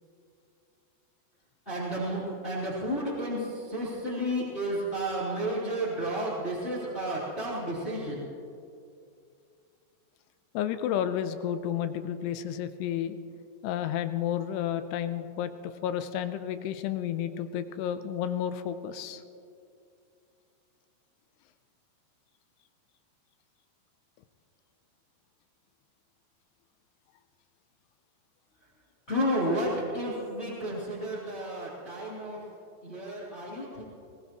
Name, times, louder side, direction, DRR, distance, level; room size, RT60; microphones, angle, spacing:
voice 1, 1.7-8.3 29.1-32.4 32.8-33.8, equal, 15° left, -9 dB, 3.5 m, -32 dB
voice 2, 10.5-13.2 13.6-15.5 15.8-19.2, left 10 dB, 85° left, 10 dB, 2.8 m, -31 dB
21.5 x 20.0 x 3.1 m, 2.5 s
omnidirectional pair, 4.8 m